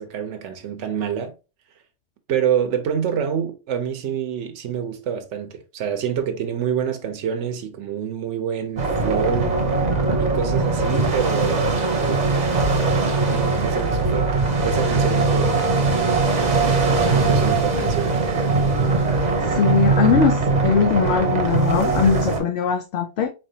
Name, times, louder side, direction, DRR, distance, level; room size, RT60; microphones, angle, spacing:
voice 1, 0.0-1.3 2.3-9.5 10.2-12.3 13.3-15.6 17.1-18.5, right 8 dB, 80° right, 1.0 m, -27 dB
sound 1, 8.8-22.4, right 3 dB, 40° right, 0.9 m, -20 dB
voice 2, 19.4-23.3, left 6 dB, 65° left, 0.8 m, -21 dB
4.2 x 3.3 x 2.7 m
omnidirectional pair, 1.2 m